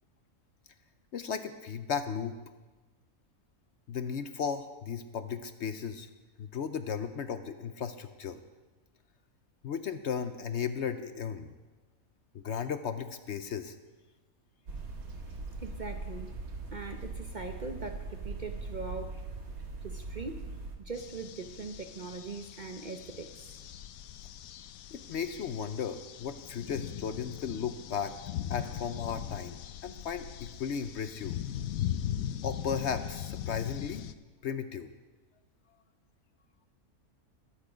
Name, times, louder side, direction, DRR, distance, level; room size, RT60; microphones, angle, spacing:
voice 1, 1.1-2.4 3.9-6.1 6.4-8.4 9.6-11.5 12.3-13.8 24.9-28.1 28.5-31.4 32.4-34.1 34.4-34.9, left 7 dB, 60° left, 10 dB, 0.8 m, -35 dB
sound 1, 14.7-20.8, right 3 dB, 85° right, 2.0 m, -40 dB
voice 2, 15.6-16.4 16.7-19.2 19.8-20.5 20.8-23.5, right 4 dB, 40° right, 6 dB, 0.7 m, -41 dB
sound 2, 20.9-34.1, left 11 dB, 85° left, 1.0 m, -39 dB
21.0 x 8.4 x 5.0 m, 1.2 s
omnidirectional pair, 1.5 m